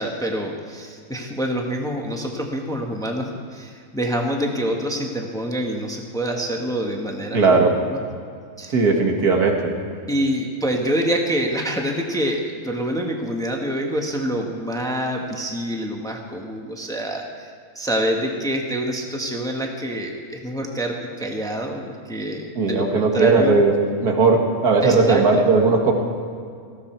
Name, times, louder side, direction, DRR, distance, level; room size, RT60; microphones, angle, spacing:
voice 1, 0.0-8.0 8.6-8.8 10.1-23.6 24.8-25.4, equal, 5° left, 1 dB, 1.3 m, -26 dB
voice 2, 7.3-7.7 8.7-9.7 22.6-23.7 24.0-25.9, right 4 dB, 80° right, 2 dB, 2.2 m, -17 dB
18.5 x 15.0 x 4.5 m, 2.3 s
omnidirectional pair, 1.6 m